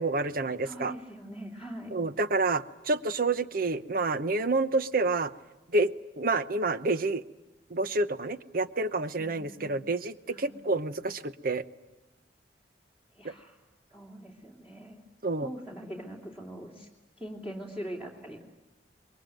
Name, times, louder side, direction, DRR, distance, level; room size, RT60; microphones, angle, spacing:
voice 1, 0.0-0.9 1.9-5.3 5.7-5.9 6.2-7.2 7.7-11.6 13.2-13.3 15.2-15.5, right 3 dB, 55° right, 13 dB, 0.9 m, -28 dB
voice 2, 0.6-1.9 9.2-9.8 10.3-10.5 13.1-13.6 13.9-15.0 15.4-16.9 17.2-18.4, equal, 5° right, -4 dB, 2.8 m, -42 dB
27.0 x 22.0 x 9.3 m, 1.0 s
head